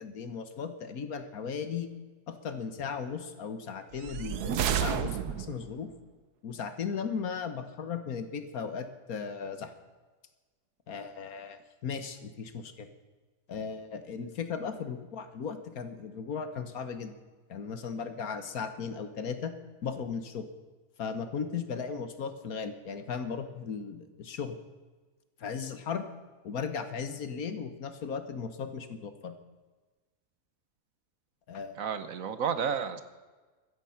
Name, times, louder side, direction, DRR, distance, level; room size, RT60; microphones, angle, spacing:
voice 1, 0.0-1.9 2.3-5.9 6.4-9.7 10.9-12.9 13.5-17.1 17.5-19.6 19.8-20.5 21.0-24.5 25.4-26.0 26.4-29.3 31.5-31.8, left 6 dB, 65° left, 10 dB, 1.6 m, -36 dB
sound 1, 3.9-5.7, right 8 dB, 80° right, 1.4 m, -31 dB
voice 2, 31.8-33.0, right 7 dB, 60° right, 12 dB, 1.3 m, -31 dB
15.5 x 13.0 x 5.8 m, 1.3 s
omnidirectional pair, 1.7 m